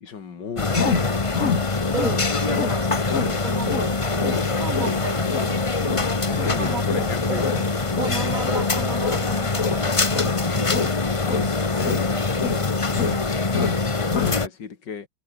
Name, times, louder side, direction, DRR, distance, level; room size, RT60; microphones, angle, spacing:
voice 1, 0.0-1.4 2.3-2.4 6.3-7.5 8.5-8.6 11.7-15.1, left 6 dB, 70° left, 2.8 m, -36 dB
sound 1, 0.6-14.5, left 3 dB, 20° left, 1.0 m, -24 dB
sound 2, 0.8-2.3 2.5-2.8 3.1-3.4 3.7-9.3 9.6-10.4 10.7-12.1 12.4-13.2 13.5-13.9 14.1-14.4, left 5 dB, 45° left, 2.0 m, -27 dB
voice 2, 1.9-4.0 4.6-5.4 6.6-6.8 7.3-7.4 8.0-10.9, right 5 dB, 45° right, 2.7 m, -33 dB
sound 3, 3.1-8.3, right 3 dB, 70° right, 5.3 m, -43 dB
omnidirectional pair, 2.0 m